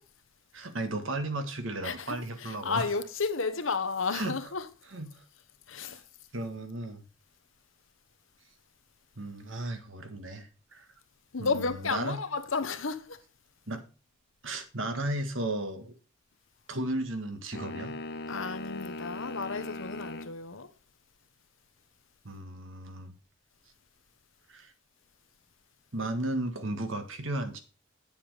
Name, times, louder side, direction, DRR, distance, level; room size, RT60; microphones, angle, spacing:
voice 1, 0.5-2.9 4.1-4.5 4.9-5.2 5.8-6.0 6.3-7.0 9.2-10.9 11.4-12.2 13.7-13.8 14.4-15.9 16.7-17.9 22.2-23.1 24.5-24.7 25.9-27.6, right 1 dB, 75° right, 1.7 m, -35 dB
voice 2, 1.8-2.2 2.4-4.6 5.7-6.0 11.3-13.2 18.3-20.7, left 4 dB, 80° left, 1.1 m, -32 dB
sound 1, 17.5-20.4, left 2 dB, 55° left, 0.9 m, -39 dB
8.9 x 7.3 x 4.9 m
head